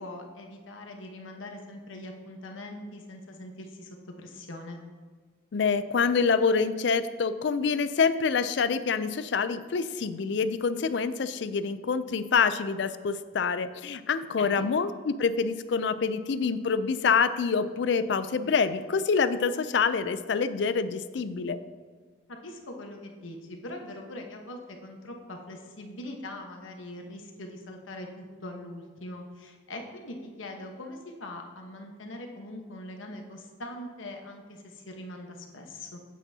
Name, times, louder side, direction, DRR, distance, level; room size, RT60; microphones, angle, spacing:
voice 1, 0.0-4.8 14.4-14.7 22.3-36.0, left 1 dB, 85° left, 2 dB, 1.1 m, -42 dB
voice 2, 5.5-21.6, left 5 dB, 60° left, 13 dB, 0.4 m, -26 dB
9.1 x 8.3 x 2.8 m, 1.5 s
head